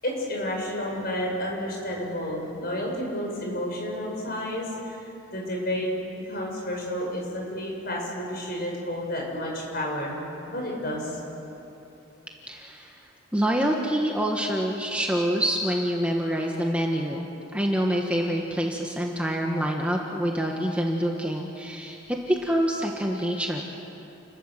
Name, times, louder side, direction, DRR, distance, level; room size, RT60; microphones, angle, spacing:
voice 1, 0.0-5.9 6.2-10.2 10.5-11.2, left 1 dB, 50° left, -1 dB, 6.5 m, -31 dB
voice 2, 12.5-13.0 13.3-23.6, equal, 5° right, 0 dB, 1.4 m, -26 dB
29.5 x 20.0 x 7.6 m, 2.9 s
head